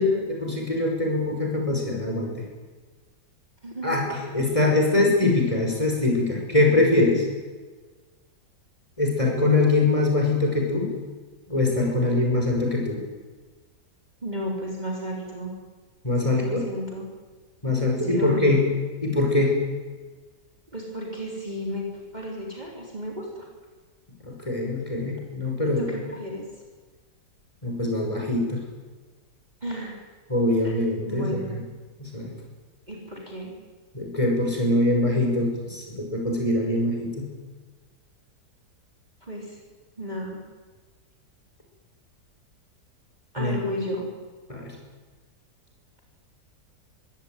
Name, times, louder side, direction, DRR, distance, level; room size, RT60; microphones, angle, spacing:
voice 1, 0.0-2.3 3.8-7.2 9.0-10.9 11.5-13.0 16.0-16.7 17.6-18.6 19.0-19.6 24.2-25.8 27.6-28.6 30.3-31.4 32.0-32.3 33.9-37.3 43.4-43.6 44.5-44.8, left 2 dB, 20° left, 0 dB, 5.6 m, -23 dB
voice 2, 3.6-4.0 14.2-15.5 16.2-17.1 18.0-18.7 20.7-23.5 25.7-26.5 29.6-30.0 30.6-30.7 31.1-31.6 32.9-33.5 39.2-39.6 40.0-40.4 43.3-44.1, equal, 25° right, -2 dB, 4.3 m, -33 dB
23.5 x 16.5 x 9.2 m, 1.4 s
omnidirectional pair, 1.8 m